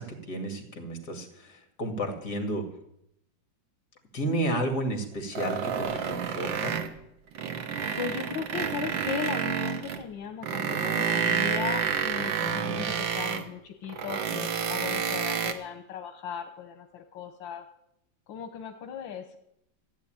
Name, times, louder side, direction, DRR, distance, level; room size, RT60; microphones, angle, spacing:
voice 1, 0.0-2.7 4.1-6.8 12.4-12.9, right 1 dB, 55° left, 5 dB, 2.8 m, -32 dB
sound 1, 5.4-7.0 7.3-10.0 10.4-13.5 13.9-15.5, right 7 dB, 80° right, 1.8 m, -29 dB
voice 2, 8.0-17.6 18.3-19.4, left 7 dB, 85° left, 7 dB, 1.7 m, -37 dB
14.5 x 8.8 x 8.9 m, 0.79 s
omnidirectional pair, 2.0 m